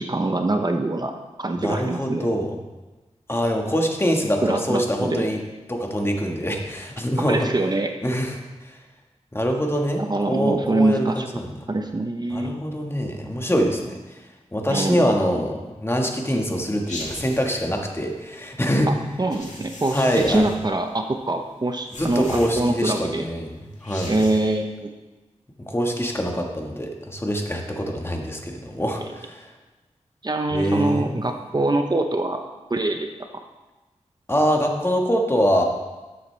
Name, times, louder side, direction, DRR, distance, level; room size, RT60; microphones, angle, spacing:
voice 1, 0.0-2.3 4.4-5.3 7.2-8.0 10.0-11.3 11.7-12.6 14.7-15.1 19.2-23.3 24.1-24.9 29.0-29.1 30.2-32.4 32.7-33.1, right 2 dB, 35° right, 5 dB, 0.7 m, -24 dB
voice 2, 1.5-2.5 3.3-5.4 5.7-7.5 8.0-8.8 9.3-11.5 12.3-14.0 14.5-18.9 19.9-20.5 22.0-23.5 23.8-24.1 25.6-29.5 30.5-31.1 34.3-35.6, equal, 20° left, 2 dB, 1.4 m, -24 dB
sound 1, 16.9-17.7 19.3-20.7 21.9-23.0 23.7-24.6, left 1 dB, 80° left, 1.9 m, -38 dB
12.0 x 8.0 x 3.3 m, 1.1 s
wide cardioid pair, 65°, 12 cm